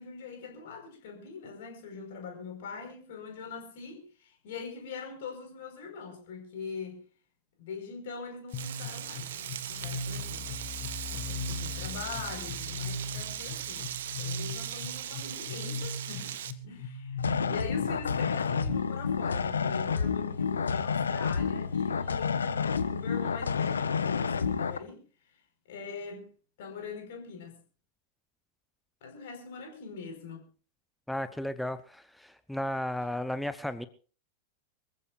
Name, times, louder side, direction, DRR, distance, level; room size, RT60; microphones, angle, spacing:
voice 1, 0.0-7.0 7.6-10.5 11.1-13.9 14.2-16.4 16.6-25.4 25.7-26.3 26.6-27.6 29.0-30.5, left 5 dB, 55° left, 3 dB, 5.1 m, -42 dB
sound 1, 8.5-18.7, left 3 dB, 35° left, 3.2 m, -39 dB
Frying (food), 8.5-16.5, right 10 dB, 60° right, 1.1 m, -39 dB
sound 2, 17.2-24.8, left 6 dB, 70° left, 1.1 m, -29 dB
voice 2, 31.1-33.9, left 1 dB, ahead, 12 dB, 0.9 m, -34 dB
25.5 x 15.0 x 2.6 m, 0.39 s
figure-of-eight pair, 90°, 0 cm